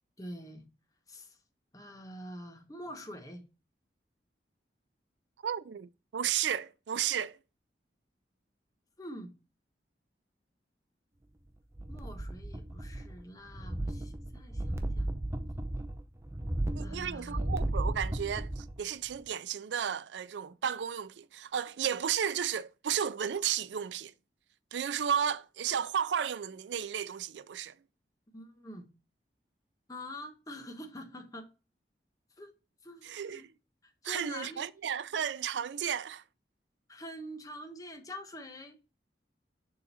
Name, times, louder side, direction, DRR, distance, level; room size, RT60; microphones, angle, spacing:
voice 1, 0.2-0.7 1.1-1.4 1.7-3.4 9.0-9.3 11.9-15.1 16.8-17.5 28.3-28.9 29.9-31.5 32.4-32.5 32.8-33.5 33.8-34.7 36.9-38.8, equal, 20° left, 1.1 m, -45 dB
voice 2, 5.4-7.4 16.7-24.1 24.7-27.7 33.0-33.4 34.0-36.2, right 8 dB, 90° right, 0.4 m, -33 dB
sound 1, 11.7-13.2 13.5-18.8 19.1-19.2, right 1 dB, 15° right, 0.6 m, -35 dB
6.9 x 3.8 x 4.1 m
head